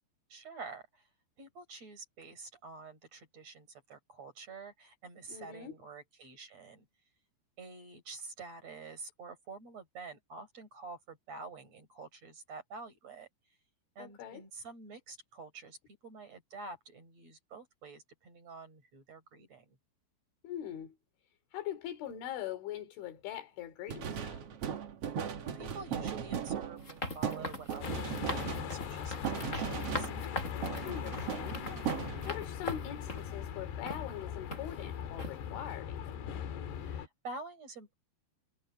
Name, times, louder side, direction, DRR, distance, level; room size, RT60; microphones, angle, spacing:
voice 1, 0.3-1.0 1.4-6.9 7.6-13.3 14.0-15.8 16.0-19.8 25.6-30.1 36.8-37.9, right 3 dB, 35° right, 5.8 m, -48 dB
voice 2, 5.3-5.8 14.0-14.4 20.4-21.0 21.5-24.4 30.9-31.6 32.3-36.2, left 11 dB, 90° left, 5.2 m, -42 dB
sound 1, 23.9-30.4 30.6-32.5, right 8 dB, 75° right, 1.3 m, -38 dB
sound 2, 26.8-33.3 33.9-34.0 34.5-34.9 35.2-35.4, left 1 dB, 15° left, 6.7 m, -41 dB
sound 3, 27.8-37.1, left 8 dB, 65° left, 3.8 m, -40 dB
omnidirectional pair, 5.3 m